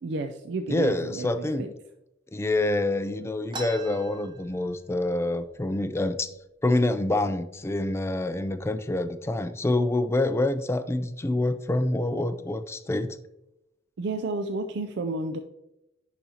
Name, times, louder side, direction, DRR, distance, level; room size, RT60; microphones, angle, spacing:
voice 1, 0.0-1.7 14.0-15.4, right 3 dB, 65° right, 6 dB, 0.4 m, -31 dB
voice 2, 0.7-1.7 2.3-6.3 6.6-13.2, left 2 dB, 15° left, 11 dB, 0.3 m, -26 dB
sound 1, 3.5-5.1 5.5-5.6 5.8-6.4 7.0-7.2 7.9-8.1 8.5-9.0, right 2 dB, 25° right, 0.7 m, -41 dB
10.0 x 4.1 x 2.8 m, 0.88 s
head